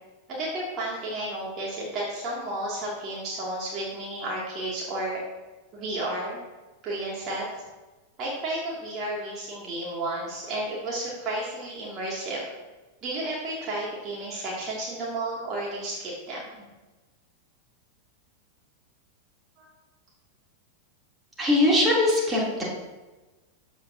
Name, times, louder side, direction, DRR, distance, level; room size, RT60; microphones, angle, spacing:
voice 1, 0.3-5.2 5.7-6.4 6.8-7.6 8.2-12.4 13.0-16.7 19.6-19.7, right 1 dB, 35° right, -5 dB, 2.8 m, -32 dB
voice 2, 21.4-22.6, left 1 dB, 15° right, -5 dB, 3.5 m, -21 dB
14.5 x 9.0 x 2.9 m, 1.2 s
figure-of-eight pair, 90°, 0 cm